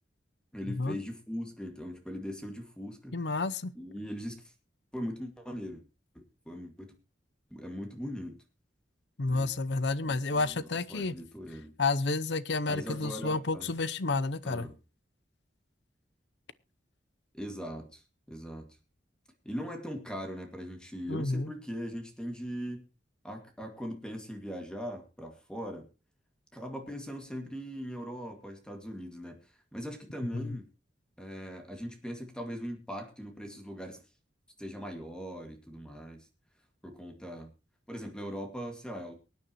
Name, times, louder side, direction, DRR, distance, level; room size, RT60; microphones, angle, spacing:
voice 1, 0.5-3.1 3.8-4.4 4.9-5.8 6.1-6.9 7.5-8.4 9.2-9.5 10.0-11.7 12.7-13.7 14.4-14.7 17.3-18.0 18.3-18.7 19.4-22.9 23.2-25.9 26.5-29.4 29.7-30.7 31.2-34.0 34.6-36.3 36.8-37.5 37.9-39.1, equal, 5° left, 2.1 m, -40 dB
voice 2, 3.1-3.7 9.2-11.1 11.8-14.7 21.1-21.5 30.3-30.6, left 3 dB, 70° left, 0.7 m, -30 dB
23.5 x 9.5 x 3.0 m
head